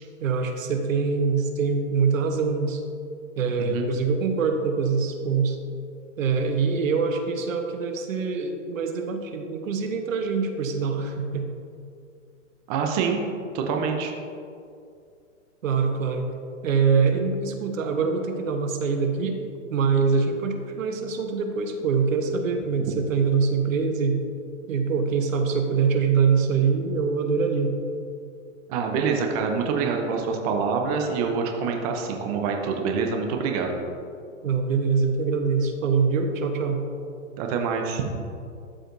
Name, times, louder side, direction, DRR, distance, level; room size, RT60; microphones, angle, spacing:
voice 1, 0.2-2.8 3.4-5.6 6.2-11.5 15.6-16.3 16.6-19.4 19.7-24.2 24.7-27.8 34.4-36.8, right 5 dB, 85° right, 5 dB, 1.0 m, -24 dB
voice 2, 12.7-13.2 13.5-14.1 28.7-33.8 37.4-38.2, right 5 dB, 30° right, 2 dB, 0.7 m, -26 dB
12.5 x 5.0 x 2.6 m, 2.4 s
hypercardioid pair, 150°, 39 cm